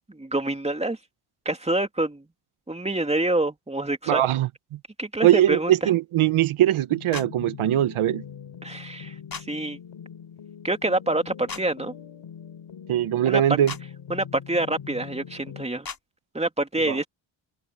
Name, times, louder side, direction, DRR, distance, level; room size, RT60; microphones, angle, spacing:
voice 1, 0.1-1.0 1.4-2.2 2.7-4.2 5.0-5.7 8.6-9.1 9.5-9.8 10.6-11.9 13.2-13.4 14.1-15.9 16.3-17.1, right 2 dB, 15° right, 2.7 m, -26 dB
voice 2, 4.1-4.8 5.2-8.2 12.9-13.7 16.9-17.0, right 12 dB, 85° right, 1.1 m, -21 dB
sound 1, 6.9-15.7, left 8 dB, 75° left, 4.6 m, -42 dB
sound 2, 7.1-7.3 9.3-9.5 11.5-11.6 13.7-13.8 15.8-16.0, left 5 dB, 45° left, 3.5 m, -35 dB
cardioid pair, 65°, 48 cm